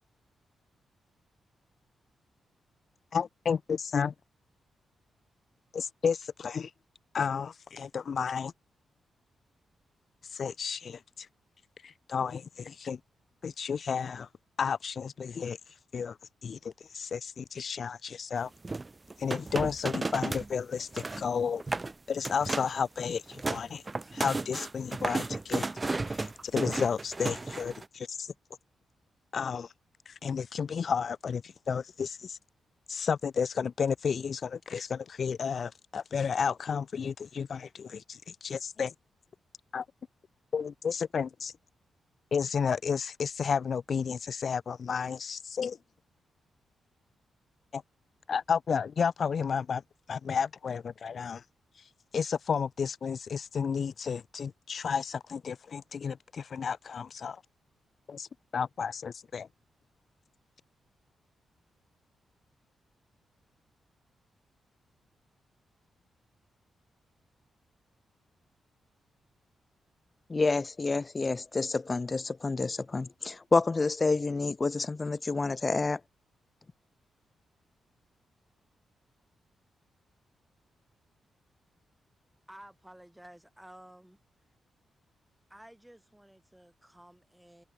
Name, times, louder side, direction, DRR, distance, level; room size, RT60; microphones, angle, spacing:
voice 1, 3.1-4.1 5.7-6.7 7.1-8.5 10.3-11.3 11.8-13.0 13.4-14.3 14.6-15.6 15.9-16.2 16.4-18.5 19.2-21.6 22.1-23.8 24.1-25.6 26.1-28.3 29.3-29.7 30.1-32.4 32.9-38.9 39.7-39.8 40.5-41.5 42.3-45.8 47.7-47.8 48.3-49.8 50.1-51.4 52.1-57.4 58.1-58.3 58.5-59.5, left 6 dB, 55° left, 1.0 m, -32 dB
sound 1, 18.6-20.5 20.8-21.3 21.6-21.9 22.2-22.8 23.1-27.9, right 3 dB, 25° right, 1.0 m, -33 dB
voice 2, 70.3-76.0, left 3 dB, 30° left, 0.4 m, -28 dB
voice 3, 82.5-84.2 85.5-87.6, right 1 dB, 5° right, 6.4 m, -53 dB
cardioid pair, 85°, 0 cm